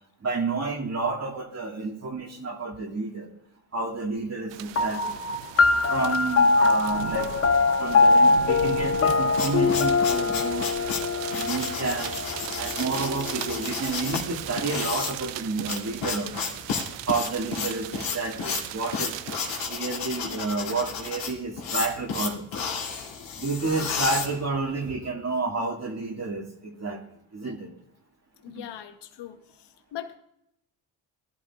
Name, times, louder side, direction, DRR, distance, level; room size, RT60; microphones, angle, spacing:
voice 1, 0.2-3.3 3.7-5.2 5.9-7.3 7.8-10.7 11.3-16.6 17.1-19.2 19.7-22.7 23.4-27.0 27.3-27.7 28.5-28.7, right 3 dB, 35° right, 1 dB, 2.0 m, -30 dB
sound 1, 4.5-19.7, right 13 dB, 65° right, 0.7 m, -38 dB
sound 2, 4.8-13.6, left 3 dB, 30° left, 0.7 m, -23 dB
sound 3, 9.0-24.9, left 5 dB, 80° left, 2.7 m, -32 dB
voice 2, 28.4-29.6 29.9-30.2, left 11 dB, 60° left, 8 dB, 1.1 m, -40 dB
18.5 x 11.5 x 2.4 m, 0.77 s
supercardioid pair, 70°, 46 cm